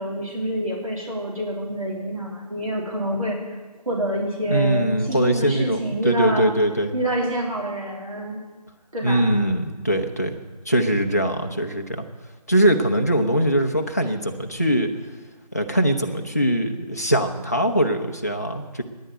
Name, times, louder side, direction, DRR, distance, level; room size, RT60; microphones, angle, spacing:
voice 1, 0.0-3.4 3.9-6.5 6.9-8.4 8.9-9.4, right 1 dB, 55° right, -2 dB, 3.1 m, -27 dB
voice 2, 4.5-6.9 9.0-10.4 10.7-12.0 12.5-14.9 15.5-18.8, right 1 dB, 25° left, 3 dB, 0.7 m, -22 dB
10.5 x 10.0 x 8.9 m, 1.2 s
figure-of-eight pair, 170°, 21 cm